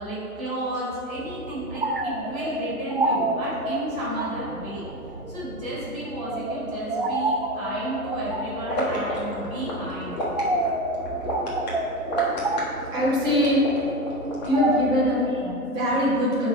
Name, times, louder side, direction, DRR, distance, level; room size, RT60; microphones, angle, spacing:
voice 1, 0.0-4.8 5.3-10.2, right 1 dB, 5° left, -15 dB, 0.7 m, -32 dB
sound 1, 1.2-15.5, right 2 dB, 40° right, 0.5 m, -30 dB
sound 2, 8.7-14.8, equal, 25° left, 1.2 m, -31 dB
voice 2, 12.9-13.6 14.4-16.5, left 1 dB, 10° right, -9 dB, 1.3 m, -22 dB
11.0 x 4.0 x 4.4 m, 2.8 s
figure-of-eight pair, 150°, 46 cm